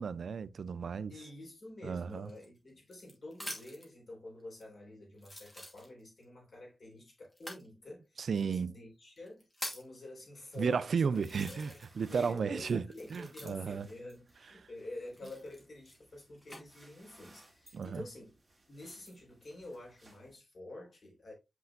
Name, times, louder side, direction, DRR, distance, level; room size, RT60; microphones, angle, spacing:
voice 1, 0.0-1.1 1.8-2.3 8.2-8.7 10.6-13.9 17.7-18.0, right 6 dB, 80° right, 0.4 m, -33 dB
voice 2, 1.1-9.4 9.7-11.2 11.5-11.8 12.1-18.3 18.7-21.3, left 1 dB, 60° left, 4.1 m, -48 dB
sound 1, 2.2-3.9 4.6-4.7 5.2-6.2 7.3-7.7 8.5-8.6 9.2-10.0 10.6-10.7 11.1-12.0 12.3-13.8 15.1-16.6 17.3-17.8, equal, 20° left, 2.1 m, -46 dB
sound 2, 10.5-20.4, right 2 dB, 15° right, 2.5 m, -64 dB
8.1 x 5.2 x 2.5 m
wide cardioid pair, 145°, 0 cm